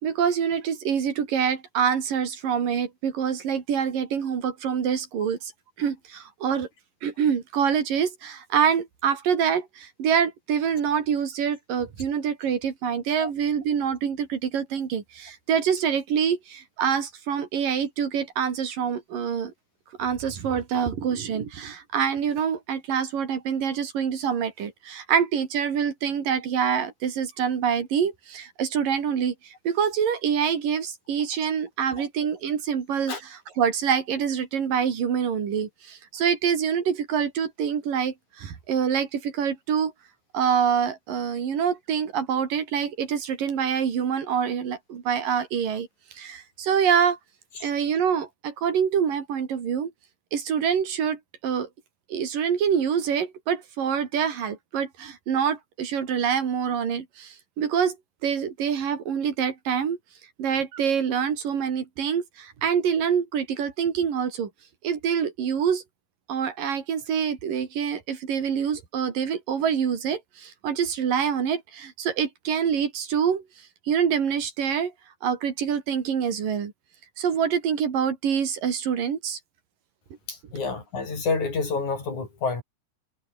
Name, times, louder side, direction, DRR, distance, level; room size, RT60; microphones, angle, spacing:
voice 1, 0.0-5.5 5.8-6.7 7.0-19.5 20.0-39.9 40.3-47.2 47.6-49.9 50.3-51.7 52.1-58.0 58.2-60.0 60.4-64.5 64.8-65.8 66.3-73.4 73.9-74.9 75.2-76.7 77.2-79.4, right 7 dB, 85° right, 4.7 m, -26 dB
voice 2, 80.3-82.6, left 4 dB, 60° left, 7.3 m, -28 dB
omnidirectional pair, 3.8 m